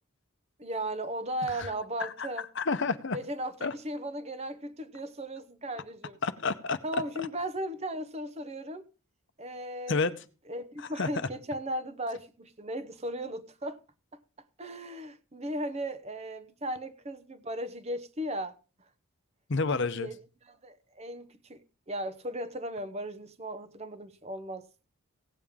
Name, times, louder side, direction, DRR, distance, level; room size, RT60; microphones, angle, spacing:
voice 1, 0.6-2.5 3.1-6.2 6.8-8.8 9.4-10.0 10.5-13.8 14.6-18.6 19.7-20.2 20.4-21.6 21.9-24.7, right 1 dB, 30° right, 0.7 m, -36 dB
voice 2, 2.6-3.2 3.6-3.7 6.2-6.8 7.2-7.3 9.9-10.1 10.8-11.3 19.5-20.1, left 4 dB, 55° left, 0.7 m, -30 dB
16.5 x 8.7 x 3.6 m
head